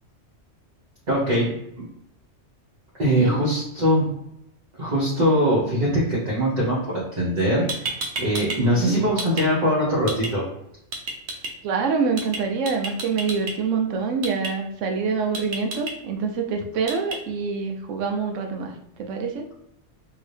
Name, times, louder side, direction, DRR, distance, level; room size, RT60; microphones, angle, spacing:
voice 1, 1.1-1.5 3.0-4.1 4.8-7.9 8.2-10.4, equal, 40° right, -7 dB, 1.0 m, -22 dB
sound 1, 7.4-7.5 7.7-8.6 8.9-9.5 10.1-10.3 10.9-11.5 12.2-12.4 12.7-13.5 14.2-14.5 15.3-15.9 16.9-17.2, right 3 dB, 65° right, 0.9 m, -30 dB
voice 2, 8.4-9.0 11.6-18.7 19.0-19.5, right 5 dB, 90° right, 3 dB, 0.9 m, -26 dB
2.9 x 2.7 x 3.2 m, 0.79 s
omnidirectional pair, 1.3 m